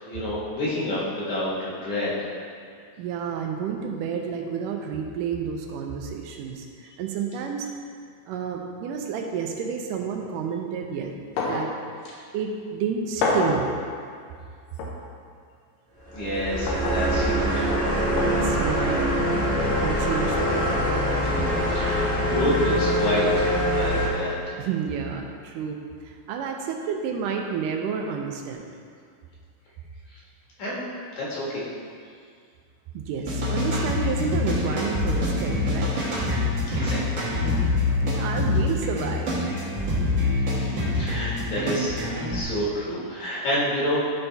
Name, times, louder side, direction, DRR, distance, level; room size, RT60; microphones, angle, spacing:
voice 1, 0.0-2.3 16.1-17.6 21.2-24.6 30.1-30.2 30.6-30.9 31.2-31.6 36.7-37.3 40.5-44.0, left 1 dB, 65° left, -7 dB, 2.8 m, -29 dB
voice 2, 3.0-7.7 8.3-11.1 11.4-11.7 12.3-13.7 18.2-19.2 19.8-21.0 24.6-28.7 32.9-36.3 36.7-36.9 37.5-37.6 38.0-39.3, right 6 dB, 80° right, 2 dB, 2.1 m, -30 dB
sound 1, 11.4-11.7 12.1-12.2 13.2-13.6 14.8-14.9 16.7-17.0 18.2-18.4 19.6-19.7, left 3 dB, 80° left, 2.4 m, -26 dB
sound 2, 16.1-24.1, equal, 20° right, 0.5 m, -24 dB
sound 3, 33.2-42.4, left 2 dB, 50° right, 1.4 m, -25 dB
11.0 x 4.0 x 3.4 m, 2.2 s
omnidirectional pair, 3.8 m